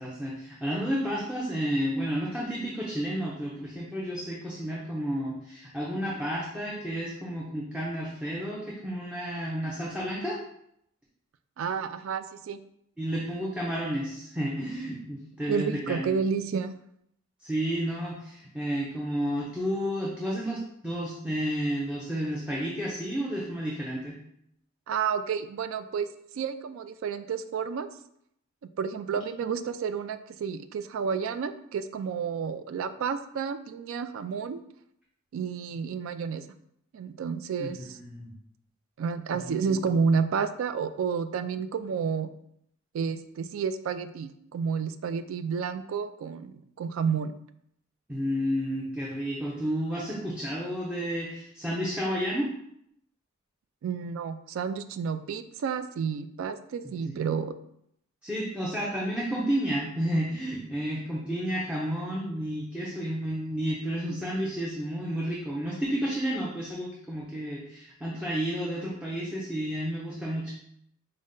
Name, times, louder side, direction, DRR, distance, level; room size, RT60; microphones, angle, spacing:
voice 1, 0.0-10.4 13.0-16.1 17.4-24.2 37.6-38.3 39.4-39.8 48.1-52.5 57.0-57.1 58.2-70.5, equal, 5° right, -5 dB, 0.6 m, -31 dB
voice 2, 11.6-12.6 15.5-16.7 24.9-26.1 26.3-27.9 28.8-34.6 35.3-36.4 36.9-38.0 39.0-42.3 42.9-47.4 53.8-57.6, right 6 dB, 70° right, 11 dB, 0.3 m, -30 dB
5.2 x 2.2 x 3.7 m, 0.74 s
head